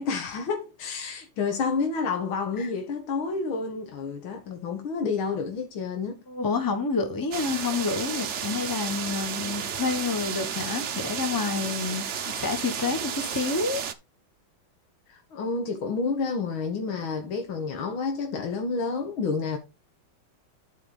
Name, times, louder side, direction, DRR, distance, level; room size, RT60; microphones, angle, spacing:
voice 1, 0.0-6.2 15.1-19.6, left 4 dB, 75° left, 2.3 m, -29 dB
voice 2, 6.3-13.8, left 4 dB, 10° left, 1.1 m, -29 dB
sound 1, 7.3-13.9, right 8 dB, 60° right, 0.7 m, -32 dB
11.5 x 5.0 x 3.9 m
omnidirectional pair, 2.3 m